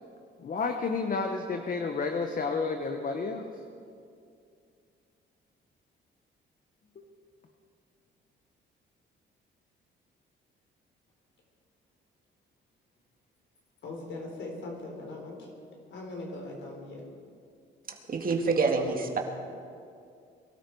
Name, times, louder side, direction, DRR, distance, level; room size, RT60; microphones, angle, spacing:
voice 1, 0.4-3.6 6.9-7.0, left 4 dB, 45° left, 5 dB, 1.2 m, -31 dB
voice 2, 13.8-15.5 15.9-17.0, left 2 dB, 70° left, 1 dB, 4.0 m, -40 dB
voice 3, 18.1-19.2, right 4 dB, 45° right, 2 dB, 2.1 m, -26 dB
23.0 x 12.5 x 4.8 m, 2.4 s
cardioid pair, 90°, 20 cm